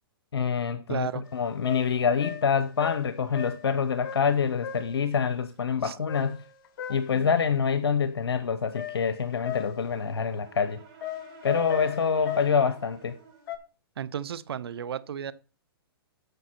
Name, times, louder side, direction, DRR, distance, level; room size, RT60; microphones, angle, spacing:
voice 1, 0.3-6.4 6.9-10.8 11.4-13.2, left 6 dB, 85° left, 0.8 m, -26 dB
voice 2, 0.9-1.2 5.8-6.0 14.0-15.3, right 9 dB, 75° right, 0.7 m, -33 dB
sound 1, 1.3-1.4 1.6-3.7 4.0-4.4 4.6-5.0 6.1-7.1 8.8-10.0 11.0-12.6 13.5-13.6, left 11 dB, 50° left, 1.6 m, -36 dB
Brass instrument, 9.4-13.6, right 7 dB, 40° right, 5.0 m, -52 dB
9.0 x 6.7 x 4.4 m
hypercardioid pair, 135°, 13 cm